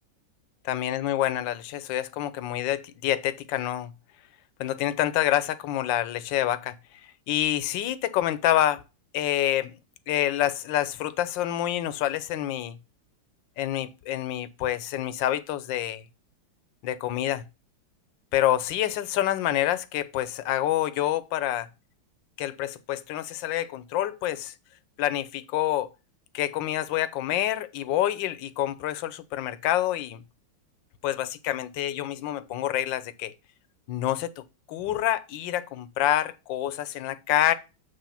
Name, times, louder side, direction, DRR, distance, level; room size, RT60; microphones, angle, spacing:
voice 1, 0.7-3.9 4.6-6.7 7.3-8.8 9.1-9.7 10.1-12.8 13.6-16.0 16.8-17.4 18.3-21.7 22.4-24.5 25.0-25.9 26.3-30.2 31.0-33.3 33.9-34.4 34.7-37.5, left 12 dB, 75° left, 1.2 m, -27 dB
8.2 x 3.2 x 5.6 m
omnidirectional pair, 2.2 m